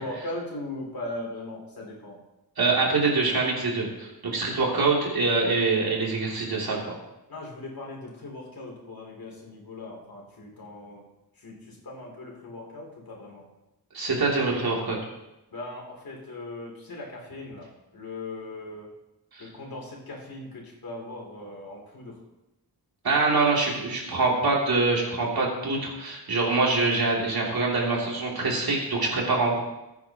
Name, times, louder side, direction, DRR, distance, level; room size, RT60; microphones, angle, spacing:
voice 1, 0.0-2.2 4.4-4.5 7.3-11.0 11.4-13.5 15.5-18.9 19.4-22.2 28.3-28.6, left 2 dB, 65° left, -2 dB, 3.3 m, -39 dB
voice 2, 2.6-6.9 13.9-15.0 19.3-19.5 23.0-29.6, right 3 dB, 70° right, -3 dB, 3.2 m, -24 dB
20.0 x 9.4 x 3.0 m, 0.96 s
wide cardioid pair, 125°, 38 cm